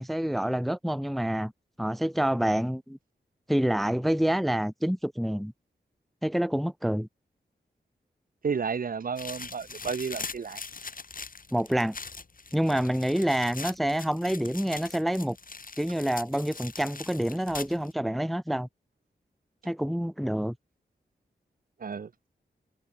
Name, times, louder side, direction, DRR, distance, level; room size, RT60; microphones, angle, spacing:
voice 1, 0.0-1.5 1.8-3.0 3.5-5.5 6.2-7.1 11.5-12.0 12.5-15.4 15.8-18.7 19.6-20.6, equal, ahead, 0.5 m, -27 dB
voice 2, 8.4-10.6 21.8-22.1, right 6 dB, 55° right, 0.6 m, -32 dB
sound 1, 9.2-17.9, left 4 dB, 50° left, 2.1 m, -42 dB
cardioid pair, 55°, 18 cm